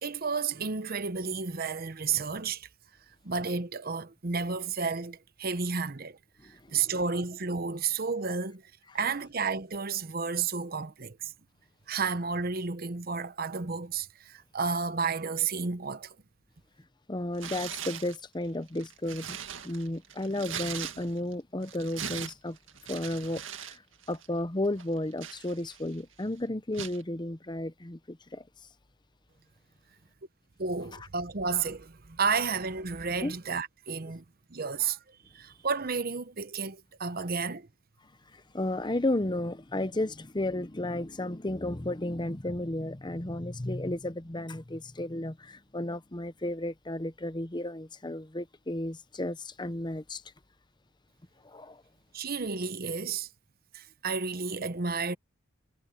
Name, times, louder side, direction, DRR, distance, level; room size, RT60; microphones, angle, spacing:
voice 1, 0.0-2.7 3.2-6.2 6.7-8.6 8.9-11.3 11.9-16.1 30.6-34.2 34.5-35.0 35.3-37.7 52.1-53.3 53.7-55.2, right 5 dB, 50° right, 0.9 m, -31 dB
voice 2, 6.4-6.9 17.1-19.4 19.6-22.6 22.9-23.8 24.1-28.4 30.9-31.1 33.2-33.4 38.3-50.2 51.4-51.8, left 1 dB, 20° left, 0.9 m, -33 dB
Tearing, 17.3-18.2 18.7-21.3 21.6-23.8 24.0-24.3 24.8-25.9 26.7-27.0, right 8 dB, 75° right, 2.0 m, -40 dB
head